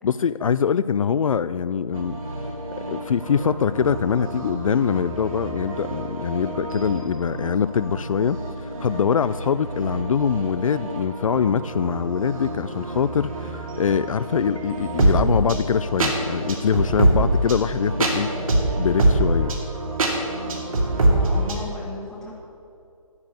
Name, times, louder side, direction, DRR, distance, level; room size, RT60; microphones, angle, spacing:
voice 1, 0.0-2.2 2.9-18.3 18.8-19.5, left 7 dB, 65° left, 14 dB, 0.4 m, -23 dB
sound 1, 1.9-21.6, right 1 dB, 70° right, 2.7 m, -26 dB
voice 2, 18.2-18.9 21.1-22.3, left 3 dB, 5° left, -4 dB, 1.3 m, -37 dB
9.8 x 9.0 x 7.5 m, 2.6 s
hypercardioid pair, 165°, 18 cm